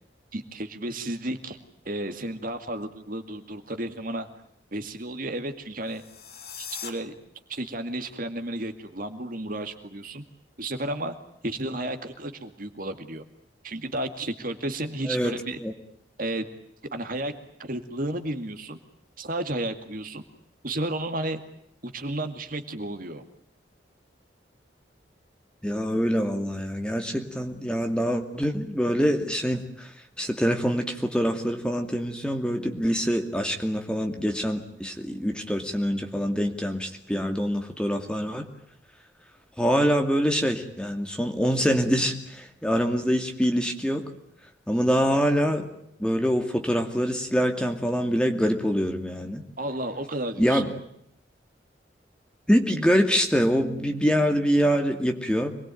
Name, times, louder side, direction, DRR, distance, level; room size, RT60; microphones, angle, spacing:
voice 1, 0.3-1.6 1.8-4.3 4.7-6.0 6.6-7.1 7.5-10.2 10.6-11.2 11.4-13.2 13.6-15.6 16.2-16.5 16.9-17.3 17.6-18.8 19.2-20.2 20.6-21.4 21.8-23.2 49.6-50.6, right 1 dB, 50° right, 7 dB, 2.2 m, -32 dB
sound 1, 5.8-6.9, left 7 dB, 55° left, 2.9 m, -39 dB
voice 2, 15.1-15.7 25.6-29.9 30.2-38.5 39.6-44.1 44.7-45.7 46.0-49.4 50.4-50.7 52.5-55.5, equal, 5° left, 4 dB, 2.5 m, -25 dB
26.5 x 21.0 x 9.2 m, 0.71 s
head